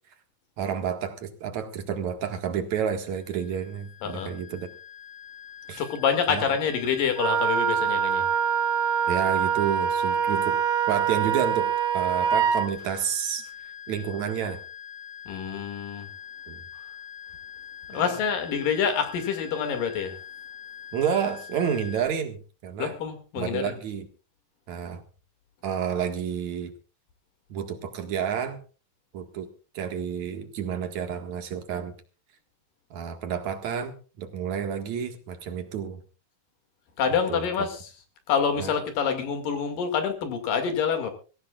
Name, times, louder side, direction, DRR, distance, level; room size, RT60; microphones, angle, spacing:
voice 1, 0.6-4.7 5.7-5.8 6.3-6.5 9.1-10.6 10.9-13.5 13.9-14.6 16.5-16.6 17.9-18.2 20.9-23.0 23.4-24.1 24.7-25.0 25.6-26.7 27.5-28.6 29.1-29.5 29.7-31.9 32.9-36.0 37.3-37.5 38.6-38.7, right 8 dB, 60° right, 6 dB, 2.9 m, -30 dB
sound 1, 3.0-22.1, left 9 dB, 35° left, 1.9 m, -44 dB
voice 2, 4.0-4.3 5.8-8.3 15.3-16.1 17.9-20.2 22.8-23.8 37.0-37.8 38.3-41.1, left 7 dB, 75° left, 6 dB, 3.9 m, -27 dB
Wind instrument woodwind instrument, 7.1-12.7, right 8 dB, 85° right, 1.1 m, -24 dB
24.5 x 15.5 x 2.4 m, 0.36 s
omnidirectional pair, 4.0 m